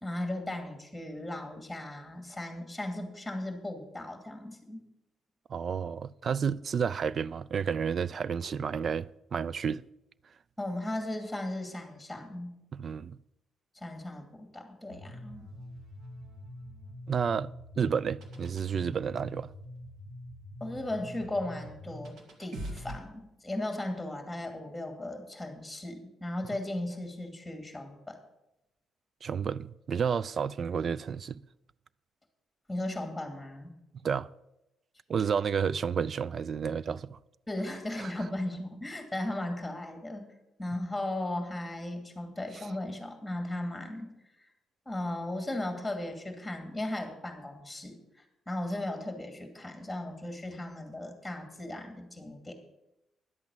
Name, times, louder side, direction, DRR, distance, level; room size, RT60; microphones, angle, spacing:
voice 1, 0.0-4.8 10.6-12.6 13.7-15.4 20.6-28.2 32.7-33.7 37.5-40.3 40.6-44.1 44.9-52.5, left 1 dB, 5° left, 2.6 m, -36 dB
voice 2, 5.5-9.8 12.7-13.2 17.1-17.5 17.8-19.5 29.2-31.4 34.0-34.3 35.1-37.2 38.0-38.1, right 6 dB, 50° right, 0.4 m, -31 dB
sound 1, 14.9-23.0, equal, 65° right, 2.3 m, -44 dB
11.0 x 8.3 x 7.2 m
cardioid pair, 90°, 0 cm